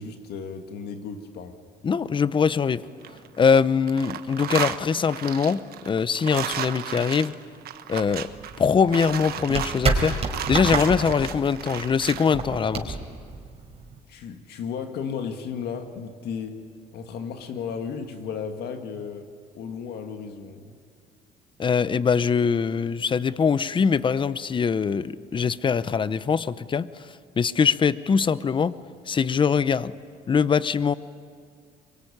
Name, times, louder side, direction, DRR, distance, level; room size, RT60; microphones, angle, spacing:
voice 1, 0.0-1.6 14.1-16.6 16.9-19.3 19.5-20.7, left 6 dB, 70° left, 5 dB, 1.9 m, -34 dB
voice 2, 1.8-2.8 3.4-7.3 7.9-8.3 8.6-10.2 10.5-13.0 21.6-26.9 27.4-28.7 29.1-29.9 30.3-30.9, left 6 dB, 30° left, 16 dB, 0.8 m, -22 dB
sound 1, 2.8-3.6 3.9-12.3, right 11 dB, 65° right, 1.2 m, -34 dB
sound 2, 8.0-14.0, right 4 dB, 35° right, 4.6 m, -29 dB
24.0 x 23.0 x 10.0 m, 2.1 s
cardioid pair, 110°, 17 cm